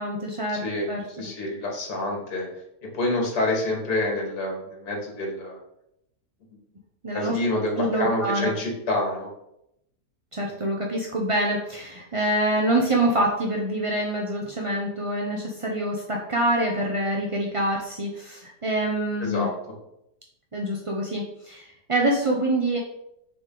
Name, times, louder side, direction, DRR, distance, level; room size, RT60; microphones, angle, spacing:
voice 1, 0.0-1.1 7.0-7.4 7.8-8.5 10.3-19.5 20.5-22.8, right 1 dB, 40° right, -1 dB, 0.4 m, -26 dB
voice 2, 0.5-0.9 1.2-2.5 2.9-5.6 7.1-9.3 19.2-19.5, left 2 dB, 65° left, -1 dB, 2.2 m, -27 dB
6.6 x 5.0 x 3.8 m, 0.80 s
omnidirectional pair, 1.8 m